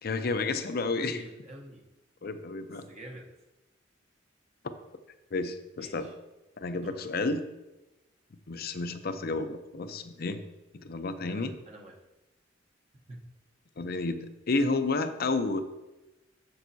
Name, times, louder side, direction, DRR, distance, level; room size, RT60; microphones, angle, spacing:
voice 1, 0.0-1.2 2.2-2.9 5.3-6.1 6.6-7.5 8.5-10.4 10.8-11.5 13.8-15.6, left 3 dB, 50° left, 10 dB, 0.6 m, -31 dB
voice 2, 0.9-1.8 2.9-3.3 5.8-6.1 6.7-7.0 11.3-11.9 13.1-13.2, right 1 dB, 35° right, 0 dB, 0.9 m, -46 dB
10.5 x 7.2 x 2.7 m, 1.1 s
head